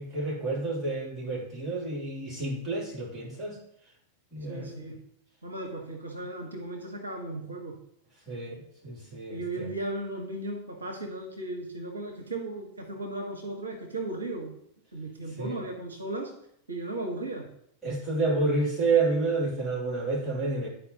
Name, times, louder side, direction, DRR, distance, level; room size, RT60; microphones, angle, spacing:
voice 1, 0.0-3.6 4.3-4.7 8.3-9.7 15.4-15.7 17.8-20.7, right 3 dB, 15° right, -6 dB, 2.8 m, -29 dB
voice 2, 4.5-4.9 5.4-7.8 9.3-14.6 14.9-16.3 16.7-17.5, right 2 dB, 75° right, 3 dB, 0.9 m, -36 dB
10.5 x 4.4 x 2.8 m, 0.73 s
figure-of-eight pair, 90°, 0 cm